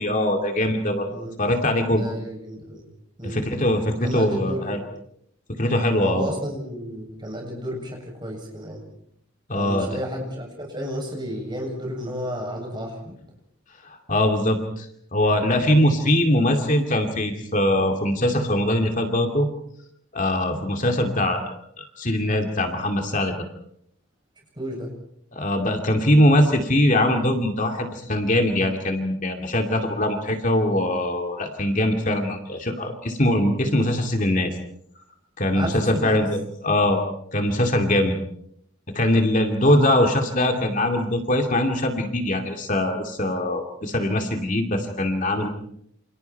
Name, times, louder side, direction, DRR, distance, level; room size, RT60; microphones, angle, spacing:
voice 1, 0.0-1.1 1.4-2.0 3.2-4.8 5.5-6.3 9.5-10.0 13.8-19.5 20.1-23.3 25.3-34.5 35.4-37.0 37.3-38.2 38.9-45.5, left 1 dB, 35° left, 4 dB, 2.5 m, -22 dB
voice 2, 1.9-2.9 3.2-3.5 4.0-4.8 6.0-8.8 9.5-13.2 24.5-24.9 35.5-36.2 39.6-39.8, equal, 20° right, 1 dB, 7.8 m, -32 dB
29.0 x 28.0 x 4.6 m, 0.70 s
head